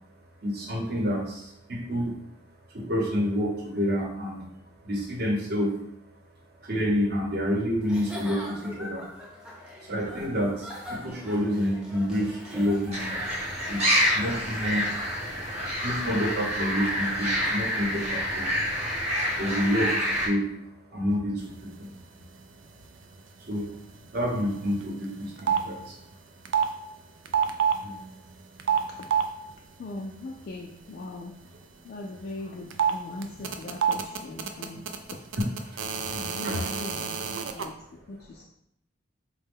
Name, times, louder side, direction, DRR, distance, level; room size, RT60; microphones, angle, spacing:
voice 1, 0.4-2.2 2.7-4.4 4.8-5.7 6.6-9.1 9.8-13.1 13.7-14.9 15.8-18.5 19.3-20.5 20.9-21.9 23.4-23.8 24.1-26.0 27.8-28.0 35.4-36.6, equal, 55° right, -1 dB, 0.9 m, -28 dB
Giggle / Chuckle chortle, 7.8-13.3, left 1 dB, 5° right, 0.6 m, -42 dB
sound 1, 12.9-20.3, equal, 35° right, 1.0 m, -27 dB
sound 2, 24.4-24.9 25.1-25.7 26.5-26.7 27.3-27.8 28.6-29.3 32.7-32.9 33.2-37.6, right 8 dB, 75° right, 0.4 m, -26 dB
voice 2, 29.8-31.4 31.8-34.9 35.1-35.2 36.2-37.8 38.1-38.4, left 2 dB, 50° left, 0 dB, 0.3 m, -40 dB
4.1 x 2.2 x 3.5 m, 0.75 s
head